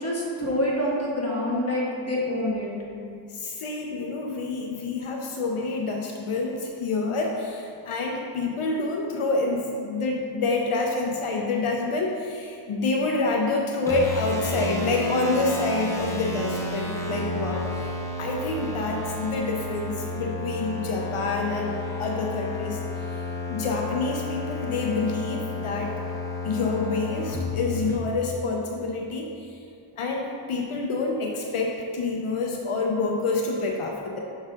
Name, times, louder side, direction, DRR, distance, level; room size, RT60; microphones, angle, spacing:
voice 1, 0.0-2.7, left 1 dB, 30° left, -5 dB, 1.5 m, -26 dB
voice 2, 3.3-23.2 23.5-25.9 26.4-29.6 30.0-34.2, left 3 dB, 80° left, 0 dB, 0.7 m, -27 dB
sound 1, 13.9-28.0, left 2 dB, 5° left, 1.0 m, -31 dB
6.2 x 3.8 x 5.1 m, 2.5 s
wide cardioid pair, 90°, 50 cm